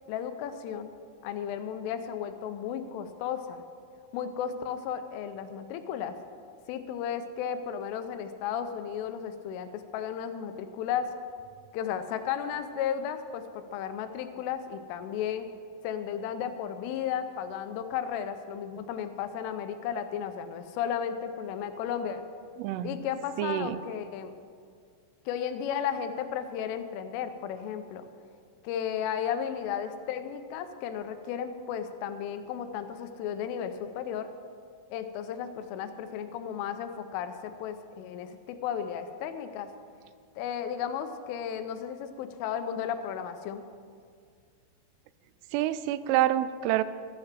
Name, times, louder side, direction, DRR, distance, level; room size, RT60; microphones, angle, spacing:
voice 1, 0.1-0.9 1.2-3.6 4.1-6.2 6.7-11.2 11.7-15.5 15.8-22.2 22.8-24.3 25.3-28.0 28.6-34.3 34.9-39.7 40.4-43.6, left 8 dB, 90° left, 9 dB, 3.3 m, -34 dB
voice 2, 22.6-22.9 23.4-23.8 45.5-46.8, right 13 dB, 85° right, 15 dB, 3.0 m, -27 dB
14.0 x 6.6 x 7.4 m, 2.1 s
omnidirectional pair, 5.6 m